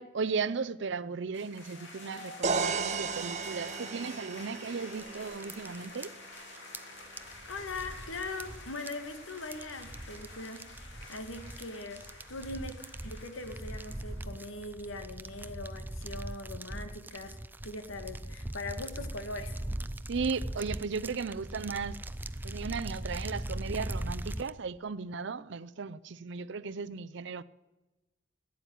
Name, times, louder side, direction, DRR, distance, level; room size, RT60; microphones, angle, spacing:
voice 1, 0.0-6.1 20.1-22.0 22.4-27.4, right 5 dB, 60° right, 0.6 m, -36 dB
sound 1, 1.3-14.6, left 2 dB, 65° left, 3.8 m, -49 dB
sound 2, 2.4-6.3, right 5 dB, 35° right, 1.0 m, -35 dB
sound 3, 5.0-24.5, right 1 dB, 10° right, 0.5 m, -40 dB
voice 2, 7.5-10.7 11.1-17.4 17.6-19.6, left 2 dB, 90° left, 1.9 m, -41 dB
16.0 x 9.6 x 9.3 m
head